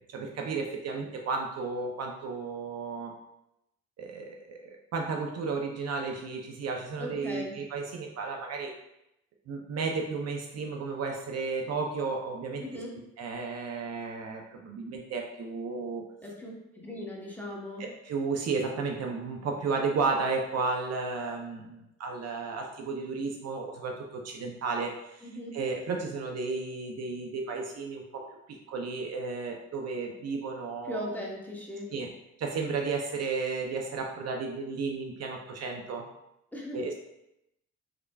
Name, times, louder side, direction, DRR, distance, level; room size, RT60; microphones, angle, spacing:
voice 1, 0.1-3.1 4.0-8.7 9.5-12.6 13.2-16.0 17.8-25.3 25.5-28.2 28.7-31.1 31.9-32.1 32.4-36.1 36.7-37.0, right 4 dB, 55° right, 2 dB, 0.6 m, -33 dB
voice 2, 7.0-7.5 12.6-12.9 16.2-17.8 25.2-25.5 30.8-31.9 36.5-36.8, left 1 dB, 5° left, -3 dB, 1.0 m, -38 dB
3.6 x 3.3 x 2.3 m, 0.84 s
cardioid pair, 80°, 30 cm